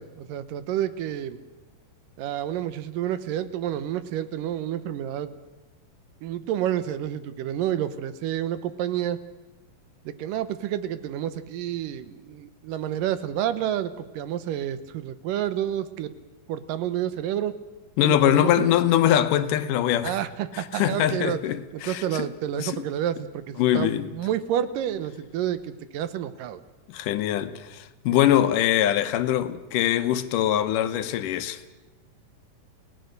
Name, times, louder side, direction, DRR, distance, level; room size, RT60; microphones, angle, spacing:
voice 1, 0.0-1.4 2.2-5.3 6.2-9.2 10.1-16.1 16.5-17.5 18.0-18.7 20.0-21.4 21.7-26.6, right 11 dB, 80° right, 2.6 m, -29 dB
voice 2, 18.0-20.2 20.5-22.3 22.6-22.8 23.6-24.1 26.9-31.6, left 11 dB, 80° left, 2.4 m, -23 dB
29.5 x 17.5 x 6.6 m
omnidirectional pair, 3.9 m